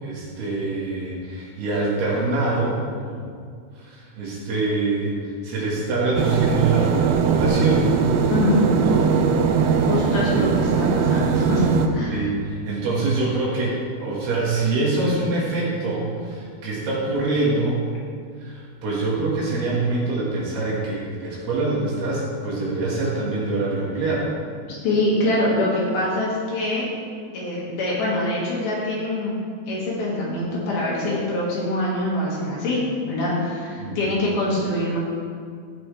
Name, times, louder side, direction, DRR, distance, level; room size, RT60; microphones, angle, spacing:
voice 1, 0.0-3.2 3.8-7.9 8.8-9.2 10.2-10.5 12.1-17.8 18.4-24.3 33.8-34.2, right 3 dB, 65° right, -5 dB, 3.4 m, -25 dB
sound 1, 6.2-11.9, right 6 dB, 80° right, 2.9 m, -20 dB
voice 2, 8.3-8.7 9.9-11.7 11.9-12.2 24.7-26.9 27.3-29.4 29.7-32.8 33.1-35.0, left 1 dB, 60° left, -6 dB, 3.2 m, -24 dB
16.0 x 6.1 x 3.2 m, 2.2 s
omnidirectional pair, 5.3 m